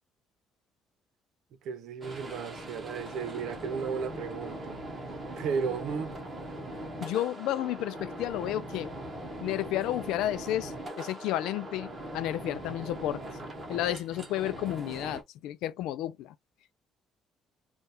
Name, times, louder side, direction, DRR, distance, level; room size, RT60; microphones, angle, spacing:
voice 1, 1.6-4.8 5.4-6.2, right 6 dB, 65° right, 0.8 m, -34 dB
sound 1, 2.0-15.2, right 1 dB, 20° right, 1.0 m, -40 dB
voice 2, 7.0-8.9 9.4-13.2 13.7-16.3, left 13 dB, 80° left, 0.4 m, -32 dB
3.3 x 2.4 x 4.2 m
cardioid pair, 160°, 0 cm